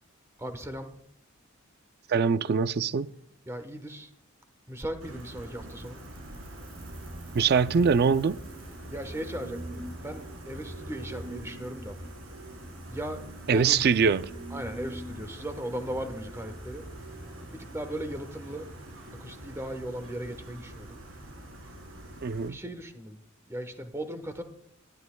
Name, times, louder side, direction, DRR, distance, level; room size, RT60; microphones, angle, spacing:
voice 1, 0.4-0.9 3.5-4.1 4.7-6.0 8.9-12.0 12.9-13.9 14.5-16.8 17.7-18.7 19.2-21.0 22.5-23.2 23.5-24.4, right 1 dB, 15° right, 1.0 m, -37 dB
voice 2, 2.1-3.1 7.3-8.4 13.5-14.3 22.2-22.6, right 5 dB, 50° right, 0.4 m, -23 dB
Gull seagull, 5.0-22.5, right 1 dB, 75° right, 4.0 m, -43 dB
22.0 x 10.5 x 2.2 m
head